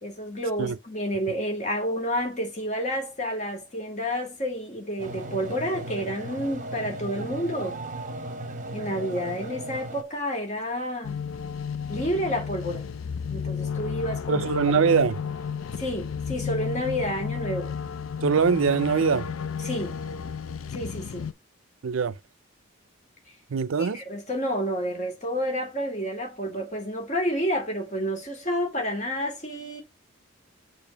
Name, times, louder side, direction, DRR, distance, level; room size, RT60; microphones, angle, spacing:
voice 1, 0.0-7.8 8.7-11.2 11.9-12.9 13.3-14.4 15.8-17.7 19.6-20.0 20.7-21.3 23.8-29.8, equal, 35° left, 2.3 m, -30 dB
sound 1, 5.0-10.0, right 2 dB, 40° right, 0.8 m, -36 dB
sound 2, 11.0-21.3, left 6 dB, 85° left, 0.4 m, -32 dB
voice 2, 14.3-15.2 18.2-19.3 21.8-22.2 23.5-24.0, right 6 dB, 80° right, 0.5 m, -22 dB
6.9 x 3.0 x 5.8 m
head